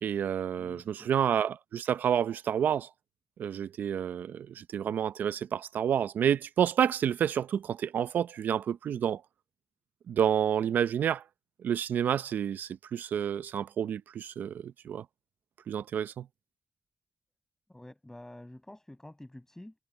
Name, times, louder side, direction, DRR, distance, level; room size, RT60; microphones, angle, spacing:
voice 1, 0.0-2.9 3.4-9.2 10.1-11.2 11.6-15.0 15.7-16.3, right 9 dB, 80° right, 0.7 m, -29 dB
voice 2, 0.6-1.1 17.7-19.8, left 1 dB, 15° left, 7.6 m, -49 dB
cardioid pair, 50°, 3 cm